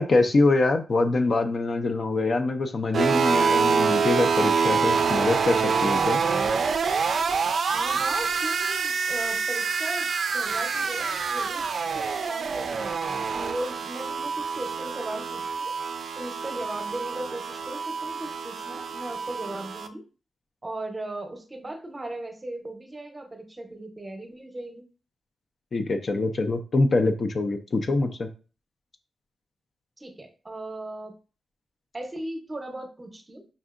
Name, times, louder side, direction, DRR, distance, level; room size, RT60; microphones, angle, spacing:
voice 1, 0.0-6.2 25.7-28.3, left 3 dB, 45° left, 6 dB, 0.5 m, -24 dB
sound 1, 2.9-19.9, right 5 dB, 60° right, 0.3 m, -26 dB
voice 2, 7.7-10.1 10.3-11.7 11.9-12.9 13.3-15.7 16.2-20.0 20.6-24.8 30.0-31.1 31.9-33.5, right 1 dB, 20° right, 5 dB, 0.8 m, -37 dB
5.2 x 2.6 x 2.4 m, 0.35 s
wide cardioid pair, 110°, 0 cm